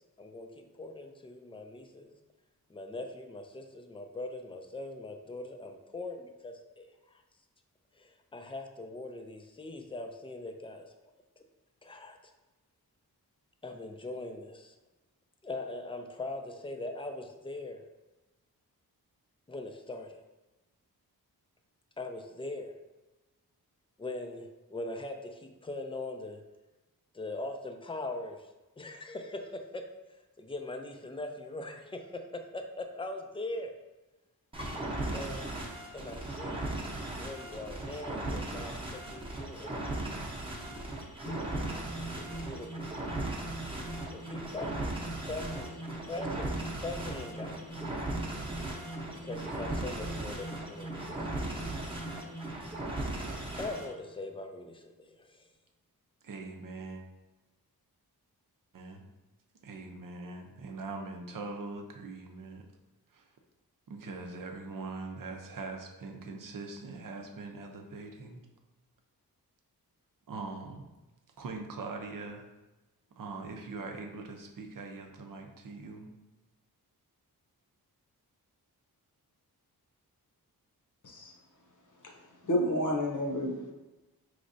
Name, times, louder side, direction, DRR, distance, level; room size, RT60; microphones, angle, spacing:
voice 1, 0.2-2.1 2.7-7.2 8.0-10.9 11.8-12.2 13.6-14.7 15.4-17.8 19.5-20.2 22.0-22.7 24.0-26.4 27.1-28.5 28.8-29.8 30.4-33.7 35.1-35.6 35.9-36.8 37.2-39.9 40.2-40.5 42.2-42.9 44.2-47.7 49.2-51.5 53.6-55.5, left 2 dB, 15° left, 5 dB, 0.4 m, -41 dB
sound 1, 34.5-53.9, right 1 dB, 15° right, 0.9 m, -37 dB
sound 2, 41.2-54.1, right 1 dB, 85° left, 1.5 m, -44 dB
voice 2, 56.2-57.0 58.7-59.1 59.6-62.7 63.1-63.3 63.9-68.4 70.3-70.8 71.4-72.5 73.2-76.1, right 3 dB, 55° right, 3 dB, 0.7 m, -42 dB
voice 3, 82.4-83.7, left 1 dB, 50° left, 1 dB, 0.9 m, -30 dB
4.9 x 3.2 x 2.6 m, 1.1 s
cardioid pair, 75°, 39 cm